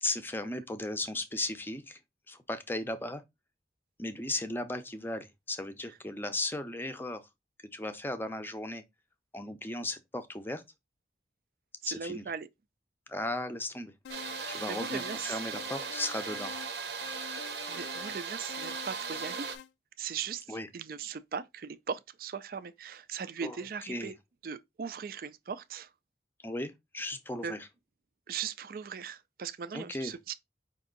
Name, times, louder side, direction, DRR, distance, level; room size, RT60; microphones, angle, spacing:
voice 1, 0.0-2.0 2.3-3.2 4.0-7.2 7.7-8.8 9.3-10.6 11.9-12.2 13.1-13.9 14.5-16.5 20.5-20.7 23.4-23.6 23.8-24.1 26.4-27.6 29.7-30.1, left 2 dB, 10° left, 0.5 m, -36 dB
voice 2, 11.8-12.5 14.4-15.4 17.7-19.5 20.0-24.1 24.4-25.9 27.4-27.5 28.3-30.3, right 6 dB, 55° right, 0.4 m, -39 dB
sound 1, 14.0-15.2 15.5-16.7 17.0-18.2 18.5-19.7, left 8 dB, 70° left, 0.3 m, -46 dB
sound 2, 14.1-19.6, right 6 dB, 75° right, 0.8 m, -38 dB
5.2 x 2.6 x 3.8 m
head